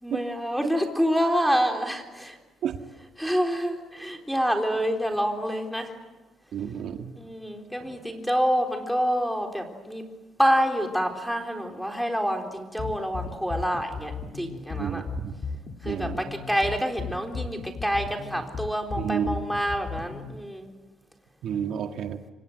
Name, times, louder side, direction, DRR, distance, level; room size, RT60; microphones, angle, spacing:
voice 1, 0.0-2.4 3.2-5.9 7.2-10.0 10.4-15.0 15.8-20.7, equal, ahead, 2 dB, 3.8 m, -27 dB
voice 2, 6.5-7.1 14.8-15.3 15.8-16.2 19.0-19.4 21.4-22.2, right 8 dB, 65° right, 5 dB, 1.8 m, -30 dB
sound 1, 12.8-20.4, left 5 dB, 40° left, 2.1 m, -35 dB
28.5 x 25.0 x 8.0 m, 1.2 s
cardioid pair, 140°, 0 cm